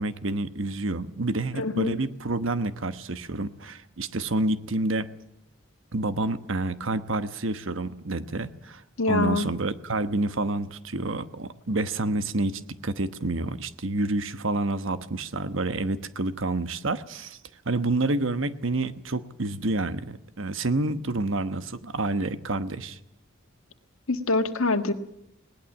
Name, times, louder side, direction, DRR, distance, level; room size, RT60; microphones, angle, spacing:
voice 1, 0.0-5.1 5.9-8.8 9.1-17.4 17.6-23.0, right 2 dB, 70° right, 11 dB, 1.1 m, -28 dB
voice 2, 1.5-2.0 9.0-9.5 24.1-24.9, left 3 dB, 85° left, 7 dB, 1.7 m, -25 dB
20.5 x 18.5 x 7.3 m, 0.81 s
head